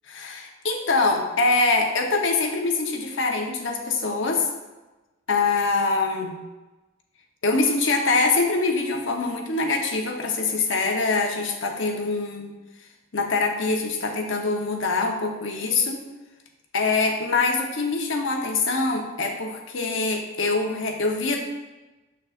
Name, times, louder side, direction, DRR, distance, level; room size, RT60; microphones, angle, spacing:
voice 1, 0.1-4.5 5.3-6.4 7.4-12.5 13.1-16.0 16.7-21.4, left 3 dB, 60° left, 2 dB, 0.9 m, -24 dB
7.0 x 6.3 x 2.5 m, 1.1 s
head